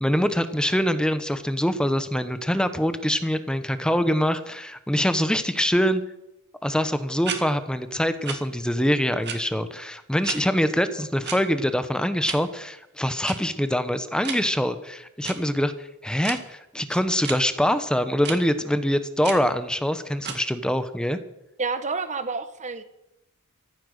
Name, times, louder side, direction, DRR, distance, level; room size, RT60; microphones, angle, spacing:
voice 1, 0.0-6.0 6.6-21.2, equal, 5° left, 11 dB, 0.9 m, -24 dB
sound 1, 7.2-7.4 8.2-8.4 9.2-9.4 10.2-10.4 11.2-11.4 12.2-12.4 13.2-13.3 14.2-14.4 15.2-15.4 16.2-16.4 17.2-17.4 18.2-18.4 19.2-19.4 20.2-20.4, right 7 dB, 50° right, 2.0 m, -31 dB
voice 2, 21.6-22.8, right 4 dB, 35° right, 11 dB, 1.3 m, -29 dB
14.5 x 13.5 x 6.6 m, 0.86 s
head